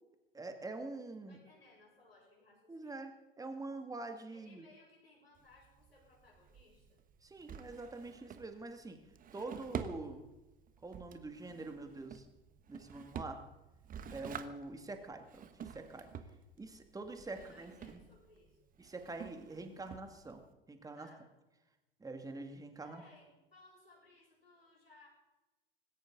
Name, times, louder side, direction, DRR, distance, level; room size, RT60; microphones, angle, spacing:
voice 1, 0.3-1.4 2.7-4.7 7.2-9.0 9.3-10.2 10.8-12.3 12.7-13.4 14.1-16.1 16.6-18.0 18.8-20.4 20.7-21.1 22.0-23.0, right 2 dB, 10° right, 6 dB, 2.2 m, -45 dB
voice 2, 1.3-3.1 4.3-7.0 16.3-16.4 17.3-18.6 20.9-21.3 22.8-25.1, left 2 dB, 90° left, -4 dB, 7.3 m, -63 dB
Drawer open or close, 5.4-20.5, right 7 dB, 30° right, 1.4 m, -49 dB
19.5 x 17.5 x 4.0 m, 1.1 s
figure-of-eight pair, 80°, 29 cm